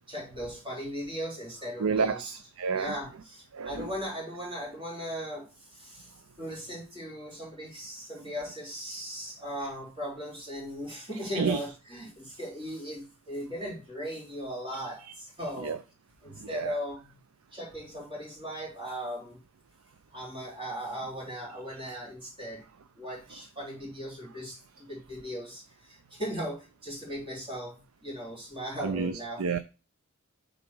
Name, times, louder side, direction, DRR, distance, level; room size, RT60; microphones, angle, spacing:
voice 1, 0.1-2.2 2.7-15.8 16.2-17.2 17.5-19.4 20.1-22.6 23.0-29.4, equal, 20° right, 3.5 m, -38 dB
voice 2, 1.8-3.0 3.5-3.9 11.3-11.6 15.0-15.1 15.6-15.8 16.3-16.8 23.3-23.4 28.8-29.6, right 5 dB, 70° right, 0.5 m, -30 dB
7.0 x 4.1 x 4.6 m
head